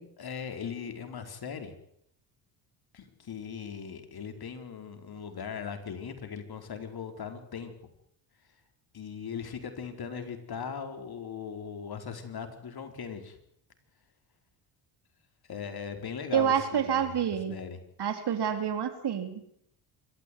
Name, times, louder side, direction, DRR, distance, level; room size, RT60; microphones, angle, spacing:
voice 1, 0.2-1.7 2.9-7.7 8.9-13.4 15.5-17.2 17.5-17.8, left 6 dB, 45° left, 7 dB, 4.8 m, -39 dB
voice 2, 16.3-17.6 18.0-19.4, right 8 dB, 50° right, 8 dB, 3.9 m, -28 dB
26.5 x 13.5 x 9.6 m, 0.72 s
hypercardioid pair, 60°, 50 cm